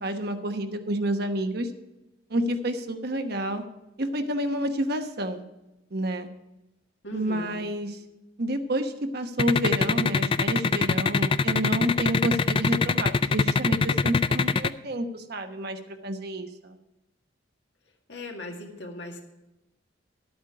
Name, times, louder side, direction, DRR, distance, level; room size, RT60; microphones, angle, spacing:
voice 1, 0.0-1.7 2.3-3.6 4.0-5.4 5.9-6.3 7.1-8.0 8.4-16.8, right 1 dB, 55° right, 6 dB, 1.1 m, -29 dB
voice 2, 7.0-7.7 18.1-19.2, left 1 dB, 65° left, 2 dB, 1.9 m, -38 dB
sound 1, 9.4-14.7, left 4 dB, 30° left, 0.3 m, -22 dB
12.0 x 8.8 x 4.8 m, 0.96 s
head